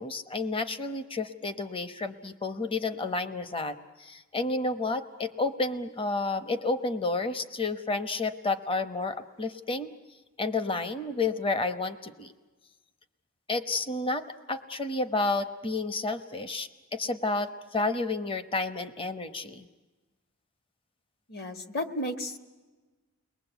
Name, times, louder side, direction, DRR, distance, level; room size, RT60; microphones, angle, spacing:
voice 1, 0.0-9.9 10.4-12.3 13.5-19.6, left 3 dB, 25° left, 10 dB, 0.9 m, -31 dB
voice 2, 21.3-22.4, left 1 dB, 45° left, 7 dB, 1.7 m, -33 dB
30.0 x 21.0 x 8.1 m, 1.2 s
head